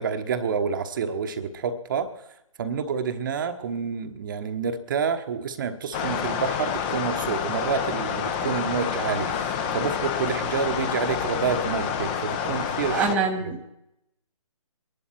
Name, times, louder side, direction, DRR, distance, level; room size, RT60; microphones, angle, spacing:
voice 1, 0.0-2.1 2.6-13.2, right 6 dB, 35° right, 8 dB, 1.1 m, -28 dB
sound 1, 5.9-13.1, left 7 dB, 20° left, 0.8 m, -28 dB
voice 2, 12.9-13.7, right 5 dB, 10° right, 0 dB, 1.0 m, -25 dB
23.0 x 11.5 x 4.4 m, 0.83 s
figure-of-eight pair, 145°, 18 cm